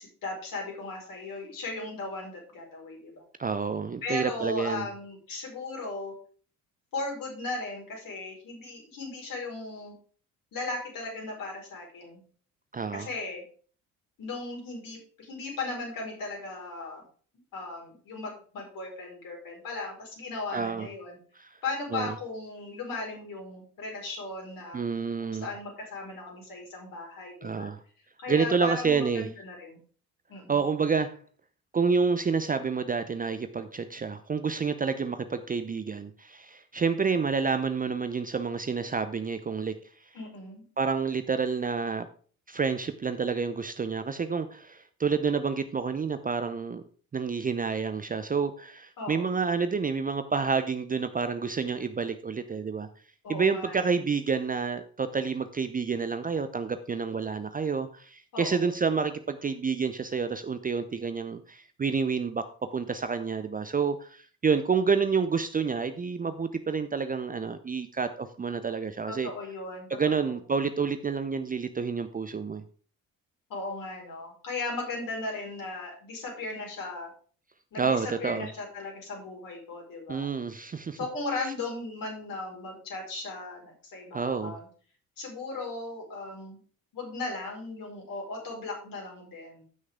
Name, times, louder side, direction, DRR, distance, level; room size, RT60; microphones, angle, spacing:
voice 1, 0.0-3.2 4.0-6.1 6.9-9.9 10.5-12.2 12.9-13.4 14.2-17.0 17.5-21.2 21.6-24.8 25.3-27.7 28.2-29.1 29.4-29.8 30.3-30.6 40.1-40.6 49.0-49.4 53.2-53.8 58.3-58.7 69.1-69.9 70.1-70.3 73.5-77.1 77.7-80.3 81.0-84.7 85.2-86.6 86.9-89.6, left 3 dB, 50° left, -1 dB, 5.0 m, -37 dB
voice 2, 3.4-4.9 12.7-13.1 20.5-20.9 21.4-21.5 21.9-22.1 24.7-25.5 27.4-27.8 28.3-29.3 30.5-31.2 31.7-39.7 40.8-42.1 42.5-46.8 47.1-52.9 53.3-69.3 69.9-72.6 77.8-78.5 80.1-81.0 84.1-84.6, right 5 dB, 20° right, 10 dB, 0.7 m, -29 dB
14.5 x 6.4 x 3.7 m, 0.43 s
figure-of-eight pair, 50°, 42 cm